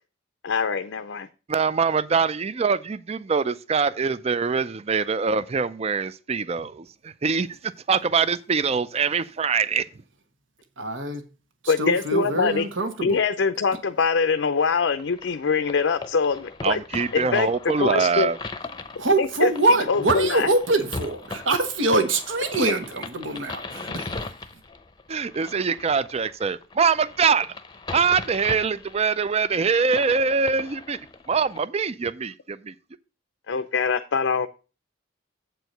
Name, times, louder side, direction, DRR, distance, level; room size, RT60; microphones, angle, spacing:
voice 1, 0.4-1.3 11.7-12.7 13.0-18.3 19.2-19.5 19.9-20.5 33.5-34.5, left 5 dB, 65° left, 0.5 m, -23 dB
voice 2, 1.5-9.8 16.6-18.4 25.1-27.5 27.9-31.0 31.3-32.7, right 5 dB, 30° right, 0.4 m, -24 dB
voice 3, 10.8-11.3 11.6-13.2 19.0-24.6, right 2 dB, 75° right, 1.3 m, -24 dB
sound 1, 14.9-31.6, left 3 dB, 20° left, 0.7 m, -39 dB
7.9 x 4.6 x 6.5 m
head